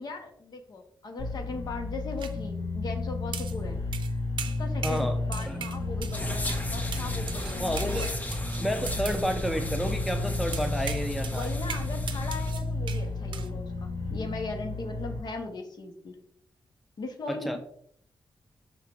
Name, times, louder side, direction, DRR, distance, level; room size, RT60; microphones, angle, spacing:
voice 1, 0.0-3.8 4.6-8.1 11.3-16.2 17.0-17.6, left 3 dB, 60° left, 5 dB, 1.2 m, -38 dB
sound 1, 1.2-15.2, left 2 dB, 90° left, 2.1 m, -32 dB
sound 2, 2.2-2.3 3.3-3.6 3.9-4.1 4.4-5.1 5.3-6.2 6.5-6.6 6.9-9.2 10.5-13.1 13.3-13.5, right 8 dB, 80° right, 0.6 m, -39 dB
voice 2, 4.8-5.2 5.5-5.6 7.6-8.0 8.6-11.5 17.3-17.6, equal, ahead, 6 dB, 0.5 m, -30 dB
sound 3, 6.1-12.5, equal, 20° left, 0.9 m, -36 dB
5.8 x 3.6 x 4.6 m, 0.65 s
wide cardioid pair, 140°, 8 cm